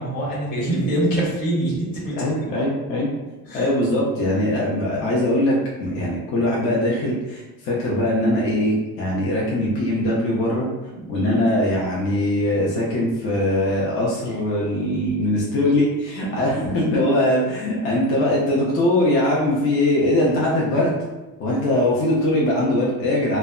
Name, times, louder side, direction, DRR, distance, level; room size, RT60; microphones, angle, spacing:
voice 1, 0.0-2.2 3.4-3.7 11.1-11.5 16.5-16.9 21.5-21.8 23.1-23.2, right 1 dB, 75° left, -5 dB, 1.2 m, -25 dB
voice 2, 2.2-3.1 3.5-10.7 11.1-21.0 21.4-23.4, left 1 dB, 40° left, -5 dB, 0.5 m, -21 dB
2.1 x 2.0 x 3.5 m, 1.1 s
cardioid pair, 165°, 36 cm